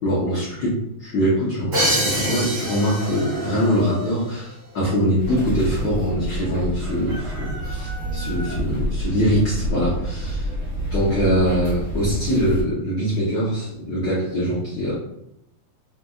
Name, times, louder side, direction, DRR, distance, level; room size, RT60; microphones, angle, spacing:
voice 1, 0.0-10.5 10.9-15.0, equal, 80° left, -7 dB, 1.0 m, -23 dB
Crash cymbal, 1.7-3.6, equal, 45° right, 2.1 m, -24 dB
Chicken rooster, 2.3-4.1 6.8-8.6, left 1 dB, 65° right, 2.9 m, -37 dB
sound 1, 5.2-12.6, equal, 20° left, 1.0 m, -28 dB
6.5 x 2.8 x 2.4 m, 0.81 s
omnidirectional pair, 3.4 m